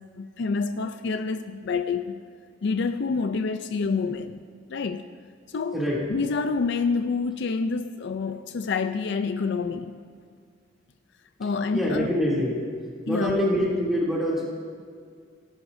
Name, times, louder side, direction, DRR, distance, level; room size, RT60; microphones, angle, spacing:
voice 1, 0.2-2.2 2.6-4.4 4.7-5.1 5.5-5.8 6.1-10.0 11.4-12.1 13.1-13.4, left 4 dB, 60° left, 9 dB, 0.4 m, -27 dB
voice 2, 11.7-12.6 13.0-14.4, equal, ahead, -6 dB, 2.8 m, -25 dB
17.0 x 11.0 x 2.6 m, 2.1 s
head